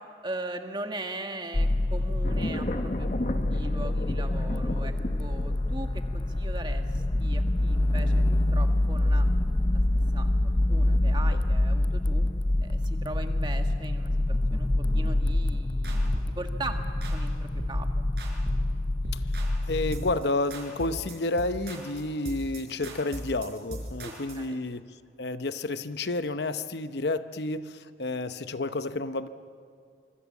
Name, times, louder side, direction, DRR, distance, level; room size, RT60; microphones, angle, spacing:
voice 1, 0.2-4.9 5.2-9.3 9.7-9.8 10.1-10.3 10.7-12.2 12.6-16.0 16.4-16.8 17.1-17.9 24.0-24.6, right 2 dB, 25° right, 5 dB, 1.6 m, -39 dB
sound 1, 1.5-20.1, left 1 dB, 25° left, 0.6 m, -26 dB
sound 2, 2.2-11.9 12.3-12.8, left 1 dB, 45° left, 1.3 m, -36 dB
sound 3, 15.3-15.5 15.8-16.4 16.7-17.2 17.6-17.8 18.2-18.7 19.0-19.6 19.9-20.2 20.5-24.4, right 1 dB, 60° right, 5.3 m, -39 dB
voice 2, 19.7-24.8 25.2-29.3, left 2 dB, 70° left, 11 dB, 0.8 m, -30 dB
25.0 x 25.0 x 7.2 m, 2.3 s
head